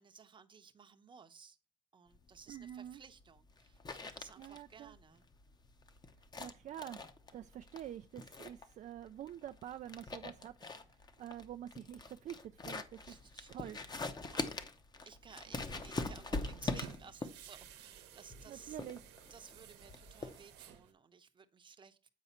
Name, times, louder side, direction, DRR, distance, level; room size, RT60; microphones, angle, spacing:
voice 1, 0.0-1.6 1.9-5.2 12.6-12.8 13.1-13.8 14.3-14.5 15.1-18.8 19.3-22.1, right 6 dB, 30° right, 0.8 m, -57 dB
sound 1, 2.1-20.8, left 3 dB, 25° left, 0.8 m, -44 dB
voice 2, 2.5-3.0 4.4-5.0 6.4-7.0 7.3-10.5 11.2-13.2 13.5-13.8 18.5-19.0, right 11 dB, 45° right, 0.4 m, -47 dB
sound 2, 15.2-20.9, right 10 dB, 85° right, 1.0 m, -55 dB
8.3 x 4.8 x 4.3 m
cardioid pair, 110°, 17 cm